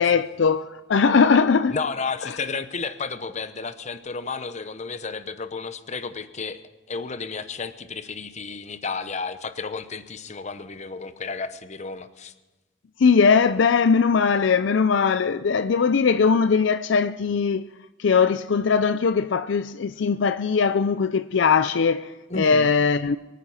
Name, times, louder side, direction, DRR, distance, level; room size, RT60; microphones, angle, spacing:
voice 1, 0.0-1.7 2.2-2.4 13.0-17.7 18.0-23.2, left 5 dB, 65° left, 0.4 m, -20 dB
voice 2, 1.7-6.6 6.9-12.3 22.3-22.7, left 4 dB, 35° left, 0.8 m, -32 dB
23.0 x 9.3 x 5.6 m
head